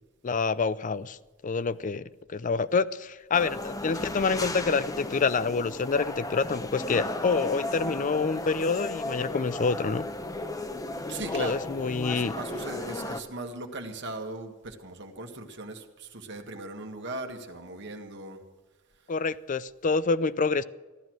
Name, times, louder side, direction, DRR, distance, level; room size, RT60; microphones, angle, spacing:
voice 1, 0.2-1.2 1.4-10.0 11.3-12.3 19.1-20.6, left 4 dB, 40° left, 17 dB, 0.5 m, -27 dB
sound 1, 3.3-13.2, left 2 dB, 15° left, 0.8 m, -35 dB
voice 2, 11.1-18.4, right 2 dB, 60° right, 4 dB, 1.7 m, -38 dB
15.0 x 12.5 x 6.3 m, 1.3 s
head